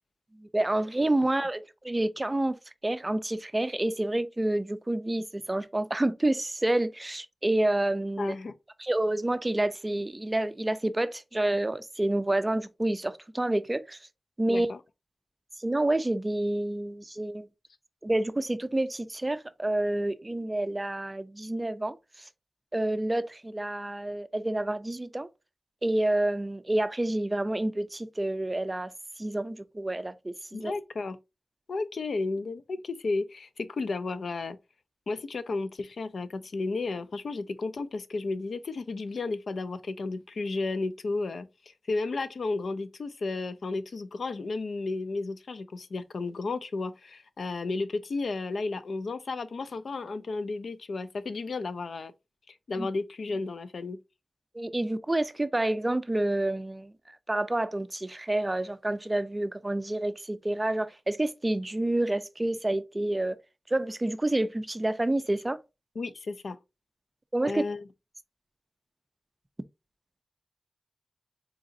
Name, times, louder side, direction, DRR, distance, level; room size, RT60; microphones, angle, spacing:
voice 1, 0.4-2.6 2.8-8.4 8.8-14.0 14.4-14.7 15.6-17.5 18.0-22.0 22.7-25.3 25.8-28.9 29.2-30.7 52.8-52.9 54.5-56.9 57.3-63.4 63.7-65.6 67.3-67.6, right 1 dB, 20° right, 0.4 m, -28 dB
voice 2, 8.2-8.5 14.5-14.8 30.5-31.2 31.7-34.6 35.1-41.5 41.9-52.1 52.5-54.0 66.0-66.6 67.4-67.8, left 3 dB, 75° left, 0.4 m, -33 dB
3.9 x 3.8 x 2.5 m
wide cardioid pair, 95°, 0 cm